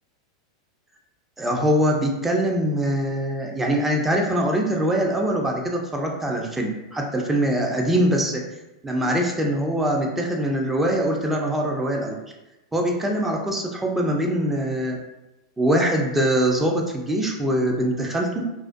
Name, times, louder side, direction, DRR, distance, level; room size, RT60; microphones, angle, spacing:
voice 1, 1.4-8.4 8.8-12.2 12.7-15.0 15.6-18.4, right 1 dB, 10° right, 0 dB, 0.4 m, -23 dB
2.3 x 2.1 x 2.5 m, 0.99 s
hypercardioid pair, 120°, 2 cm